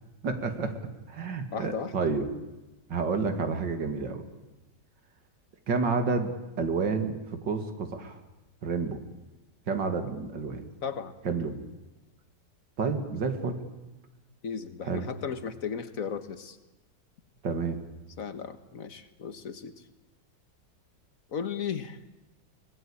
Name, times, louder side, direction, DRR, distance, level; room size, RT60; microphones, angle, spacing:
voice 1, 0.2-0.7 1.1-2.2 2.9-4.2 5.7-7.2 7.4-8.2 8.6-9.0 9.7-10.6 11.2-11.6 12.8-13.6 14.8-15.1 17.4-17.8, right 4 dB, 90° right, 7 dB, 2.9 m, -29 dB
voice 2, 1.5-1.9 10.8-11.1 14.4-16.6 18.2-19.7 21.3-22.0, left 6 dB, 55° left, 10 dB, 1.7 m, -35 dB
23.5 x 19.0 x 8.6 m, 1.1 s
omnidirectional pair, 1.9 m